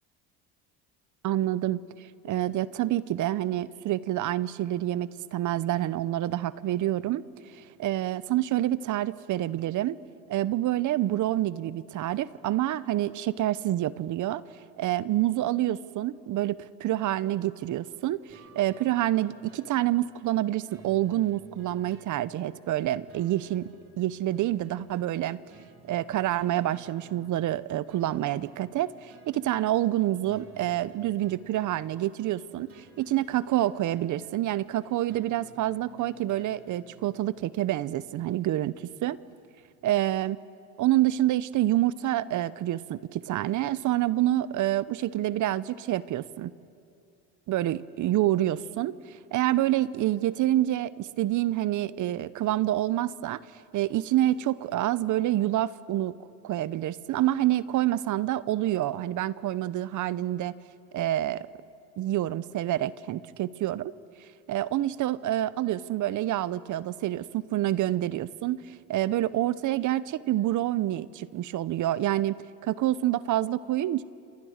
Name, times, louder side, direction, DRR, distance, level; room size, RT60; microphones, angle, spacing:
voice 1, 1.2-1.8 2.2-7.2 7.5-10.0 10.3-14.4 14.8-23.7 24.0-25.4 25.9-39.2 39.8-40.4 40.8-46.5 47.5-53.4 53.7-56.1 56.4-60.5 60.9-61.5 62.0-63.9 64.5-72.3 72.6-74.0, right 14 dB, 55° right, 17 dB, 0.8 m, -27 dB
sound 1, 18.3-37.5, right 2 dB, 35° right, 3.9 m, -56 dB
28.5 x 26.5 x 6.6 m, 2.5 s
supercardioid pair, 100°, 37 cm